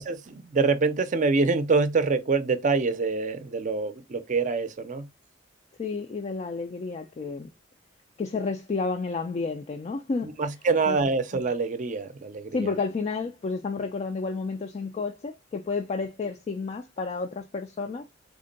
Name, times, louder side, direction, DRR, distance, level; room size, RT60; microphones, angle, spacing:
voice 1, 0.0-5.1 10.2-12.7, right 4 dB, 40° right, 0.5 m, -25 dB
voice 2, 5.8-7.5 8.2-10.3 10.9-11.0 12.5-18.0, left 4 dB, 35° left, 0.3 m, -31 dB
3.5 x 2.2 x 3.8 m
head